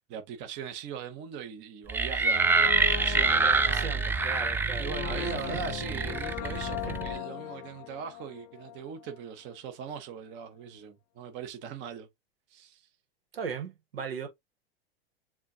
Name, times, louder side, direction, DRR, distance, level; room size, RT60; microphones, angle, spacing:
voice 1, 0.0-3.9 4.8-12.1 12.5-12.9, right 7 dB, 40° right, 1.2 m, -40 dB
sound 1, 1.9-7.2, right 4 dB, 5° right, 0.3 m, -26 dB
Brass instrument, 2.3-9.2 9.5-9.6, left 16 dB, 45° left, 0.6 m, -39 dB
voice 2, 3.4-5.6 6.9-7.0 13.3-14.3, right 6 dB, 80° right, 1.6 m, -38 dB
7.2 x 2.5 x 2.8 m
hypercardioid pair, 100°, 29 cm